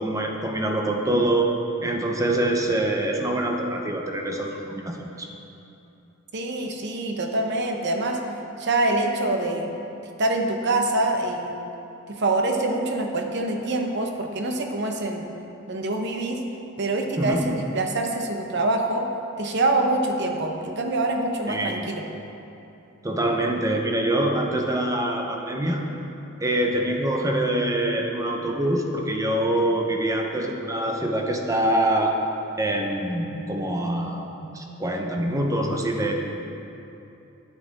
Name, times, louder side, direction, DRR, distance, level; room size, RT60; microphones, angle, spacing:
voice 1, 0.0-1.5 1.8-5.3 17.2-17.4 21.5-21.9 23.0-25.8 26.4-32.1 32.6-36.1, right 1 dB, 15° right, 2 dB, 0.7 m, -25 dB
voice 2, 6.3-8.2 8.6-9.7 10.2-11.6 12.1-15.3 15.7-16.4 16.8-19.1 19.4-22.0, right 2 dB, 55° right, 3 dB, 0.8 m, -25 dB
9.6 x 8.4 x 4.0 m, 2.9 s
head